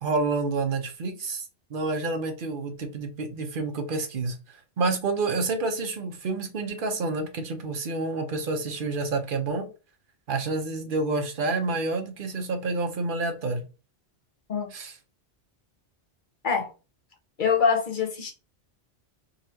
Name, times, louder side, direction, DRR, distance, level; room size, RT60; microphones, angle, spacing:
voice 1, 0.0-9.7 10.3-13.6 14.7-15.0, right 3 dB, 55° right, 0.9 m, -29 dB
voice 2, 17.4-18.3, left 6 dB, 50° left, 1.1 m, -24 dB
4.1 x 2.9 x 2.8 m
omnidirectional pair, 1.1 m